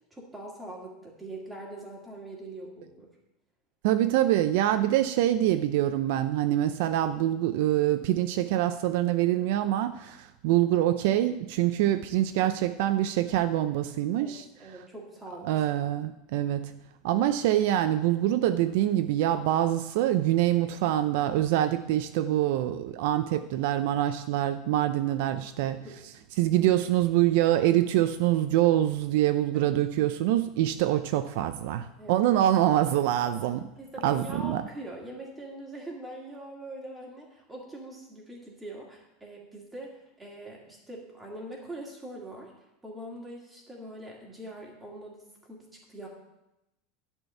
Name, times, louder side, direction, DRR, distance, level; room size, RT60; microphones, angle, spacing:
voice 1, 0.1-3.1 14.2-15.5 25.8-26.0 29.5-29.7 32.0-32.2 33.8-42.5 42.8-45.2 45.5-46.1, right 1 dB, 5° right, -2 dB, 2.3 m, -43 dB
voice 2, 3.8-14.5 15.4-16.7 17.0-25.8 26.4-33.7 34.0-34.6, right 13 dB, 60° right, 10 dB, 0.5 m, -25 dB
11.0 x 4.5 x 8.0 m, 0.92 s
supercardioid pair, 165°, 0 cm